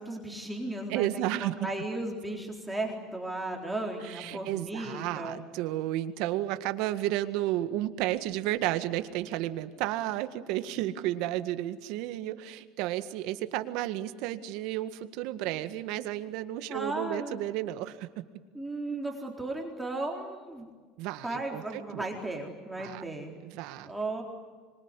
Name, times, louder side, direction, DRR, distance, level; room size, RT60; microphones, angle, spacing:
voice 1, 0.0-5.4 16.7-17.4 18.5-20.7 21.2-23.3 23.8-24.2, right 2 dB, 5° right, 0 dB, 4.0 m, -35 dB
voice 2, 0.9-1.5 4.0-18.1 21.0-22.0 22.8-23.0 23.4-23.9, right 14 dB, 70° right, 9 dB, 1.8 m, -32 dB
26.0 x 23.5 x 9.9 m, 1.5 s
supercardioid pair, 130°, 0 cm